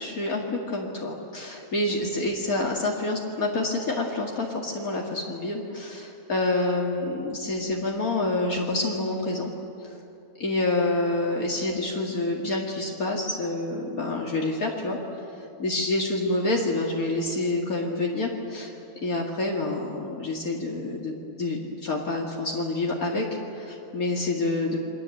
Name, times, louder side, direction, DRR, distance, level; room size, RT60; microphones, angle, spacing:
voice 1, 0.0-9.5 10.4-15.0 15.6-18.7 19.0-23.3 23.5-24.8, left 2 dB, 65° left, -1 dB, 2.6 m, -27 dB
28.5 x 23.0 x 8.5 m, 2.8 s
omnidirectional pair, 1.6 m